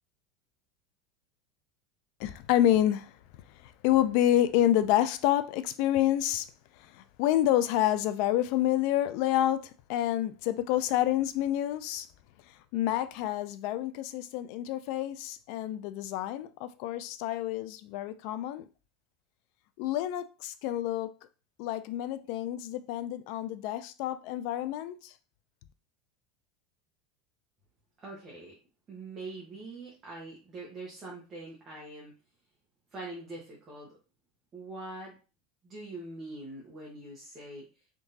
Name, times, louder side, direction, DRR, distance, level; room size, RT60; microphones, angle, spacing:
voice 1, 2.2-3.1 3.5-6.5 6.8-12.1 12.7-18.7 19.8-21.1 21.6-25.1, left 12 dB, 60° left, 0.4 m, -28 dB
voice 2, 28.0-28.5 28.9-32.1 32.9-33.9 34.5-35.1 35.6-37.6, right 2 dB, 25° right, 1.2 m, -43 dB
3.7 x 3.5 x 2.7 m
supercardioid pair, 145°, 0 cm